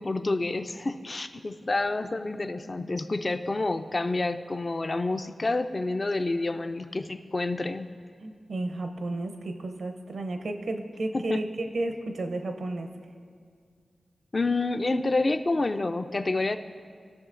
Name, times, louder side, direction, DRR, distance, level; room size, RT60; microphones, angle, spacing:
voice 1, 0.0-7.9 11.1-11.4 14.3-16.6, left 2 dB, 40° left, 10 dB, 0.4 m, -28 dB
voice 2, 8.2-12.9, right 2 dB, 75° right, 5 dB, 0.7 m, -32 dB
16.0 x 6.2 x 2.5 m, 2.1 s
cardioid pair, 55°, 0 cm